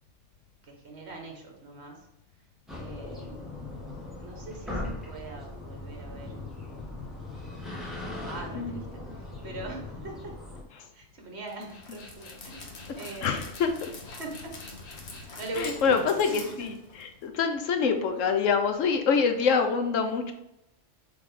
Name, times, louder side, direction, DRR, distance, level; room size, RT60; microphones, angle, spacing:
voice 1, 0.6-2.1 2.8-3.6 4.2-6.4 8.0-10.4 10.9-13.5 14.2-14.5 15.2-16.7, right 2 dB, 60° right, 1 dB, 1.6 m, -42 dB
sound 1, 2.7-10.6, left 2 dB, ahead, 1.5 m, -39 dB
Dog, 11.5-17.3, left 3 dB, 65° left, 1.4 m, -44 dB
voice 2, 13.2-13.9 15.6-20.3, left 5 dB, 85° left, 6 dB, 1.2 m, -26 dB
7.8 x 3.5 x 3.8 m, 0.83 s
omnidirectional pair, 1.3 m